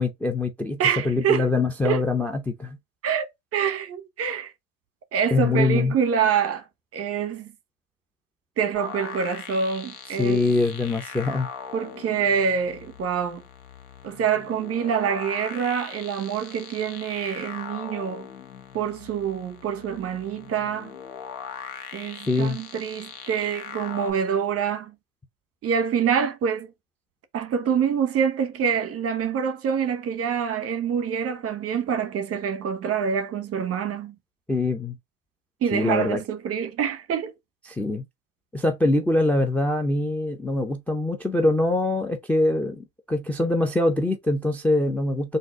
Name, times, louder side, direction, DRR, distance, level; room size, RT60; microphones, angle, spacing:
voice 1, 0.0-2.8 5.3-5.9 10.2-11.5 22.3-22.6 34.5-35.0 35.7-36.2 37.7-38.0 38.5-45.4, left 2 dB, 5° left, 0.5 m, -23 dB
voice 2, 0.8-1.5 1.8-2.0 3.0-4.5 5.1-6.6 6.9-7.5 8.6-10.4 11.7-13.4 14.0-18.3 18.7-20.9 21.9-24.9 25.6-26.7 27.3-34.1 35.6-37.3, right 7 dB, 35° right, 0.9 m, -26 dB
sound 1, 8.7-24.1, left 7 dB, 85° left, 1.1 m, -40 dB
3.8 x 2.6 x 3.6 m
hypercardioid pair, 100°, 43 cm